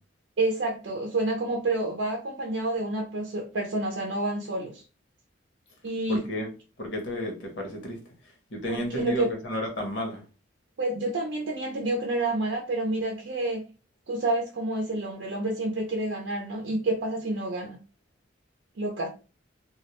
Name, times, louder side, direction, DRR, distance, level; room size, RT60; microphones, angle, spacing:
voice 1, 0.4-4.8 5.8-6.2 8.7-9.3 10.8-13.6 14.1-17.8 18.8-19.1, right 2 dB, 65° right, 0.5 m, -29 dB
voice 2, 6.1-6.5 6.8-8.0 8.2-10.2, equal, 70° left, 0.9 m, -32 dB
2.3 x 2.1 x 2.9 m
head